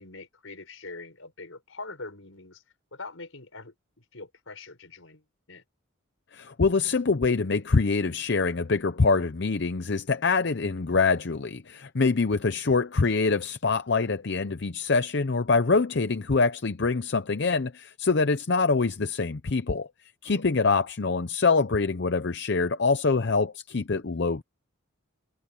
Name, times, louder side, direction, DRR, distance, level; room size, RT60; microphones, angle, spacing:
voice 1, 0.0-2.6 2.9-5.6 20.3-20.5, left 3 dB, 75° left, 4.9 m, -43 dB
voice 2, 6.3-19.9 20.2-24.4, left 4 dB, 55° left, 0.7 m, -25 dB
head